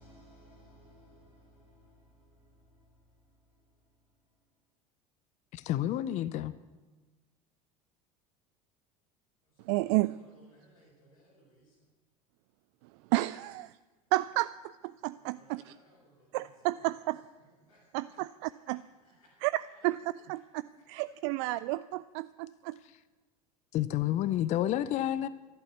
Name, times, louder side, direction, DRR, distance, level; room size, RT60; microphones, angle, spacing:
voice 1, 0.0-2.8 9.6-9.7 10.3-11.7 15.2-16.4 17.7-18.2 18.6-18.7 19.0-19.3, equal, 85° left, 5.1 m, -60 dB
voice 2, 5.5-6.5 23.7-25.3, left 12 dB, 40° left, 0.6 m, -30 dB
voice 3, 9.7-10.2 13.1-13.7 14.1-14.5 14.8-15.7 16.3-17.2 17.9-18.8 19.4-22.7, right 19 dB, 50° right, 0.4 m, -31 dB
12.5 x 11.5 x 8.1 m
figure-of-eight pair, 70°, 19 cm